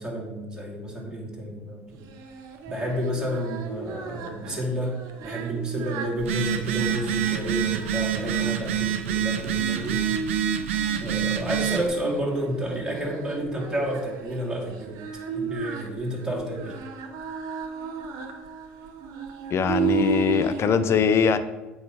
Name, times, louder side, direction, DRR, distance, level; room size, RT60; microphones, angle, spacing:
voice 1, 0.0-2.0 2.7-5.0 5.2-10.0 11.0-15.0 15.3-16.8, right 1 dB, 10° right, -3 dB, 2.5 m, -30 dB
Singing, 2.0-20.7, right 4 dB, 60° right, 1.0 m, -34 dB
Telephone, 6.2-11.9, right 9 dB, 80° right, 0.6 m, -27 dB
voice 2, 19.5-21.4, left 6 dB, 40° left, 12 dB, 0.6 m, -22 dB
8.3 x 3.2 x 5.8 m, 1.1 s
hypercardioid pair, 70°, 7 cm